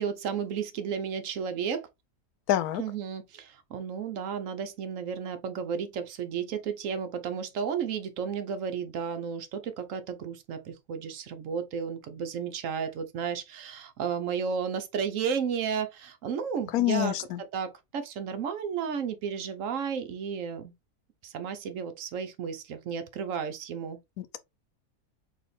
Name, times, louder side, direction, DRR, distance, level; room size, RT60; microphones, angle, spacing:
voice 1, 0.0-1.9 2.8-17.1 17.5-20.7 21.2-24.0, right 7 dB, 65° right, 1.0 m, -33 dB
voice 2, 2.5-2.8 16.7-17.4 24.2-24.4, left 13 dB, 85° left, 1.1 m, -27 dB
4.2 x 2.8 x 3.3 m
omnidirectional pair, 1.5 m